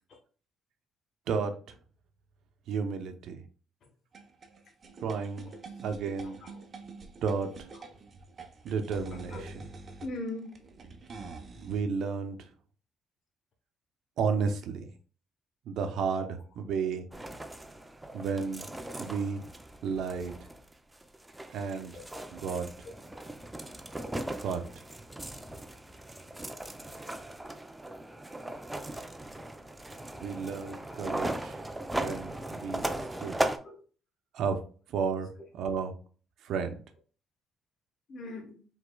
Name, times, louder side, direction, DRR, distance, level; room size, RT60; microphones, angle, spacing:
voice 1, 1.3-1.8 2.7-3.4 5.0-5.5 5.8-6.4 7.2-7.7 8.6-9.5 11.6-12.5 14.2-14.9 15.6-17.1 18.1-18.7 19.0-19.4 19.8-20.5 21.5-21.9 22.3-22.7 24.4-24.8 30.2-31.6 31.9-32.9 33.2-33.5 34.3-34.6 34.9-35.3 35.6-35.9 36.4-36.7, right 5 dB, 75° right, 0.7 m, -32 dB
sound 1, 4.1-11.8, right 3 dB, 40° right, 0.8 m, -46 dB
voice 2, 6.2-6.6 7.8-7.9 9.3-9.5 10.0-10.6 16.2-16.3 21.9-22.2 22.8-22.9 33.6-33.8 38.1-38.6, left 2 dB, 55° left, 1.0 m, -41 dB
sound 2, 17.1-33.6, right 1 dB, 10° right, 0.5 m, -38 dB
5.1 x 3.6 x 2.2 m
cardioid pair, 110°, 0 cm